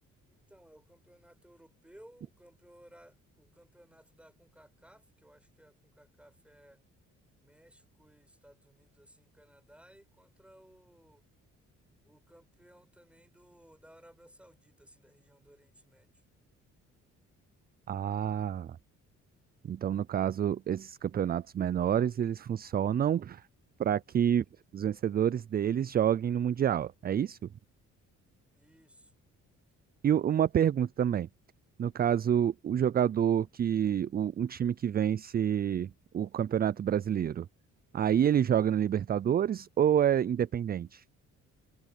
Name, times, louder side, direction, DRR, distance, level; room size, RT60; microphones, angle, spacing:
voice 1, 0.3-6.8 7.4-11.2 12.0-16.2 28.5-29.2, right 1 dB, 5° right, 6.1 m, -59 dB
voice 2, 17.9-18.8 19.6-23.4 23.8-24.4 24.7-27.4 30.0-31.3 31.8-35.9 36.1-37.5 37.9-41.0, right 9 dB, 30° right, 0.4 m, -28 dB
cardioid pair, 90°, 30 cm